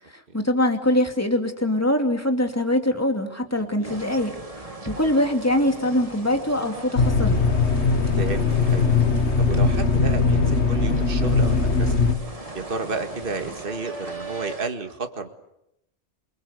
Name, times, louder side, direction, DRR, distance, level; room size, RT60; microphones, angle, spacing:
voice 1, 0.3-4.4 4.9-7.5, left 1 dB, 10° left, 5 dB, 2.7 m, -23 dB
voice 2, 3.6-3.9 4.9-5.1 8.2-9.0 9.4-12.0 12.5-15.3, right 4 dB, 45° right, 6 dB, 2.1 m, -32 dB
sound 1, 3.8-14.7, right 2 dB, 30° right, 2.4 m, -39 dB
sound 2, 7.0-12.1, left 4 dB, 65° left, 2.1 m, -20 dB
28.5 x 22.5 x 8.2 m, 0.83 s
omnidirectional pair, 1.2 m